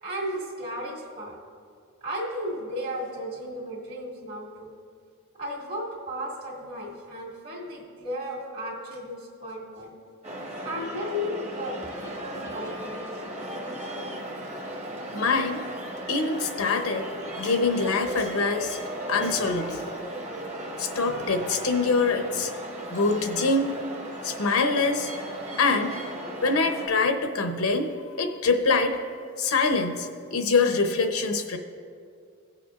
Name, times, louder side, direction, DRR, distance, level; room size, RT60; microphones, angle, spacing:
voice 1, 0.0-1.4 2.0-4.7 5.4-9.9 10.6-13.2, equal, 50° right, -3 dB, 2.1 m, -34 dB
sound 1, 10.2-26.9, right 1 dB, 30° right, 1.2 m, -36 dB
voice 2, 15.1-15.6 16.1-17.1 17.4-18.8 19.1-19.8 20.8-22.5 22.9-23.8 24.2-25.1 25.6-26.0 26.4-29.0 29.4-31.6, left 4 dB, 80° left, 5 dB, 0.8 m, -24 dB
18.0 x 6.7 x 2.5 m, 2.3 s
head